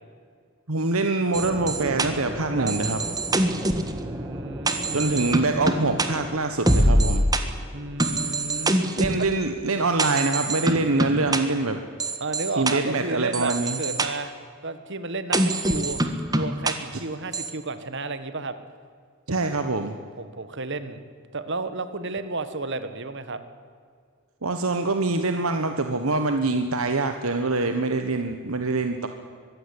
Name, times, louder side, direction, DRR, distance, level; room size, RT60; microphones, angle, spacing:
voice 1, 0.7-3.0 4.9-7.2 9.0-11.8 12.6-13.8 19.3-19.9 24.4-29.1, right 3 dB, 80° right, 7 dB, 1.3 m, -24 dB
sound 1, 1.3-7.4 8.0-9.2 10.0-11.4 12.0-12.7 13.3-14.1 15.3-16.7 17.3-17.5, right 1 dB, 20° right, 1.6 m, -25 dB
voice 2, 3.4-5.3 7.7-8.9 12.2-14.3 14.6-18.6 20.2-21.0 21.3-23.4, right 3 dB, 55° right, 11 dB, 1.7 m, -32 dB
23.0 x 15.5 x 9.9 m, 2.1 s
head